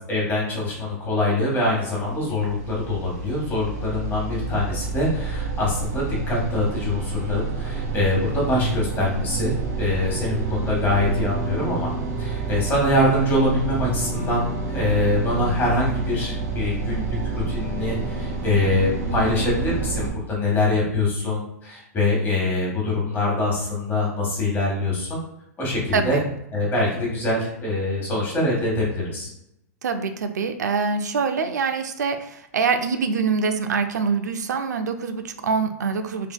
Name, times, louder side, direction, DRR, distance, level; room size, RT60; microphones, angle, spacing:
voice 1, 0.0-11.9 12.2-14.5 14.7-25.2 25.6-26.2 26.5-29.3, left 2 dB, 20° left, -3 dB, 1.4 m, -24 dB
sound 1, 1.7-20.1, right 4 dB, 65° right, 0.8 m, -29 dB
voice 2, 25.9-26.3 29.8-36.3, right 5 dB, 90° right, 8 dB, 0.4 m, -24 dB
3.5 x 2.7 x 2.2 m, 0.80 s
hypercardioid pair, 125°, 9 cm